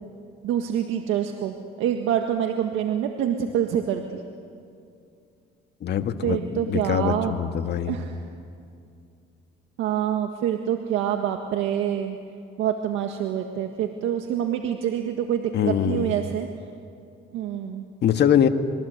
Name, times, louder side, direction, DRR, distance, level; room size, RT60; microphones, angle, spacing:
voice 1, 0.4-4.2 6.2-7.3 7.9-8.3 9.8-12.2 12.6-16.5 17.3-17.9, right 9 dB, 80° right, 4 dB, 1.7 m, -26 dB
voice 2, 5.8-6.4 6.7-8.0 15.5-16.1 18.0-18.5, left 9 dB, 60° left, 7 dB, 1.7 m, -22 dB
27.5 x 22.0 x 8.1 m, 2.4 s
cardioid pair, 85°, 20 cm